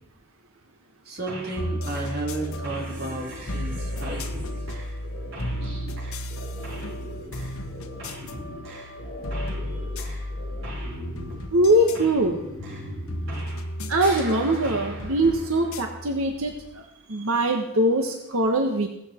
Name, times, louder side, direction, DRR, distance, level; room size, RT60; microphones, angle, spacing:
voice 1, 1.1-4.6, right 2 dB, 45° right, -1 dB, 3.7 m, -33 dB
sound 1, 1.3-1.7 1.9-13.7 14.0-16.2, equal, 70° right, 7.7 m, -40 dB
sound 2, 1.6-16.8, equal, 90° left, 1.4 m, -34 dB
voice 2, 11.5-12.4 13.9-16.5 17.1-18.9, right 1 dB, 85° right, 3 dB, 1.5 m, -22 dB
17.5 x 14.0 x 4.5 m, 0.84 s
head